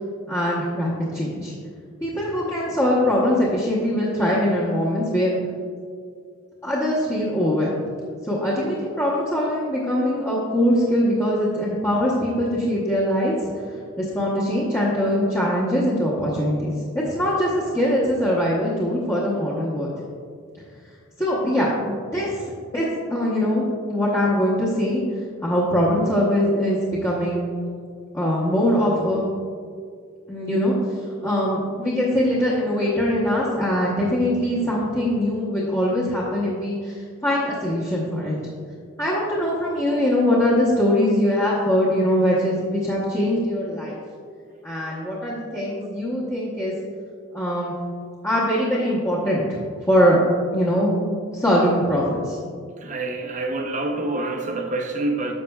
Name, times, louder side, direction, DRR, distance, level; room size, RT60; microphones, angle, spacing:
voice 1, 0.3-1.5 2.0-5.3 6.6-7.7 8.3-13.5 14.0-16.7 17.1-19.9 21.2-22.4 22.7-25.0 25.4-27.5 28.1-29.3 30.3-30.7 31.2-38.4 39.0-44.0 44.6-46.7 47.3-47.7 48.2-49.6 49.9-50.2 50.5-50.9 51.3-52.4, equal, 15° left, -8 dB, 0.9 m, -22 dB
voice 2, 52.8-55.3, right 2 dB, 35° right, 4 dB, 0.6 m, -27 dB
11.0 x 6.6 x 2.3 m, 2.1 s
head